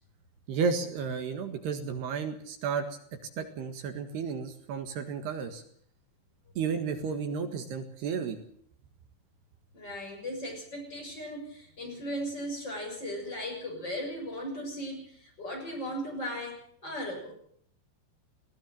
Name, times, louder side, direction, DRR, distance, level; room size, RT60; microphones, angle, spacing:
voice 1, 0.5-2.9 3.4-5.6 6.6-8.4, right 5 dB, 65° right, 7 dB, 3.5 m, -32 dB
voice 2, 9.7-17.3, equal, 20° left, 2 dB, 7.1 m, -37 dB
20.0 x 17.0 x 7.7 m, 0.62 s
omnidirectional pair, 5.3 m